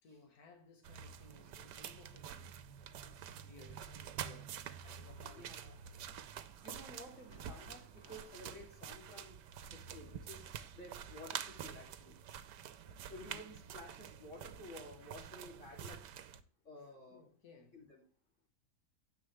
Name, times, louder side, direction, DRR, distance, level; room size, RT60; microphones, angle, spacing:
voice 1, 0.0-5.6 13.3-13.6 16.8-17.9, left 4 dB, 60° left, 2.2 m, -61 dB
sound 1, 0.8-16.4, right 9 dB, 85° right, 1.4 m, -48 dB
sound 2, 4.3-5.0 5.7-10.8, equal, 15° left, 2.2 m, -68 dB
voice 2, 5.2-5.8 6.6-9.4 9.7-10.5 10.7-12.2 12.8-16.0 16.6-17.2 17.7-18.0, left 1 dB, 45° left, 3.4 m, -53 dB
9.8 x 8.3 x 3.3 m
omnidirectional pair, 1.8 m